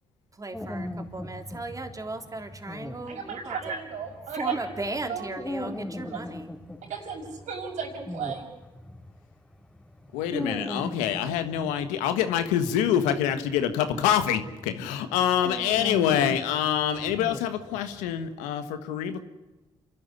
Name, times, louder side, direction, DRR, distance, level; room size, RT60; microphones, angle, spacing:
voice 1, 0.3-3.8 4.3-6.5, right 2 dB, 25° right, 4 dB, 3.5 m, -36 dB
sound 1, 0.5-9.1 9.6-18.1, left 1 dB, 10° left, 4.2 m, -39 dB
voice 2, 3.1-4.6 5.1-5.4 6.9-8.5, right 6 dB, 75° right, 2 dB, 5.9 m, -34 dB
voice 3, 10.1-19.2, left 9 dB, 90° left, 9 dB, 1.5 m, -26 dB
27.0 x 12.5 x 9.9 m, 1.1 s
supercardioid pair, 50°, 12 cm